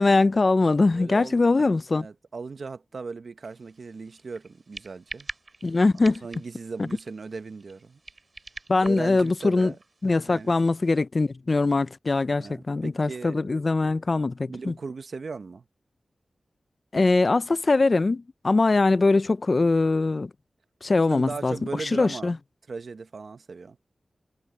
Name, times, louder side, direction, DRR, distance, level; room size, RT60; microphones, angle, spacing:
voice 1, 0.0-2.1 5.6-6.2 6.8-6.9 8.7-9.7 10.0-14.7 16.9-20.3 20.8-22.4, left 3 dB, 45° left, 0.5 m, -22 dB
voice 2, 0.9-5.3 5.6-8.0 8.8-9.8 10.0-10.7 12.4-13.6 14.5-15.6 21.1-22.3 22.7-23.8, right 4 dB, 70° right, 0.9 m, -38 dB
sound 1, 3.4-11.0, right 3 dB, 45° right, 3.3 m, -46 dB
wide cardioid pair, 85°, 0 cm